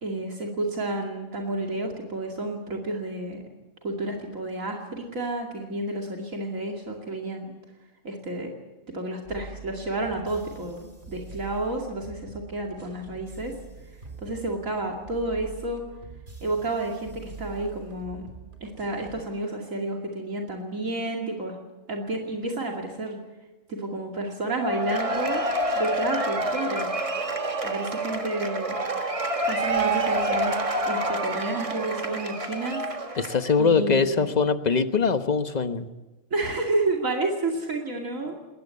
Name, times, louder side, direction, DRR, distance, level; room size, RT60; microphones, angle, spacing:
voice 1, 0.0-3.4 3.8-7.5 8.0-8.5 8.9-13.5 14.2-15.8 16.4-18.3 18.6-21.6 21.9-23.2 23.7-25.4 25.8-26.9 27.6-28.8 29.5-30.5 30.8-33.2 33.6-34.3 36.3-38.3, right 2 dB, 80° right, 0 dB, 3.0 m, -30 dB
sound 1, 9.2-19.2, right 4 dB, 50° right, 3.7 m, -44 dB
Cheering / Applause / Crowd, 24.6-33.5, right 1 dB, 25° right, 1.5 m, -28 dB
voice 2, 33.2-35.9, left 5 dB, 35° left, 9 dB, 1.2 m, -22 dB
20.5 x 19.0 x 8.5 m, 1.1 s
omnidirectional pair, 1.4 m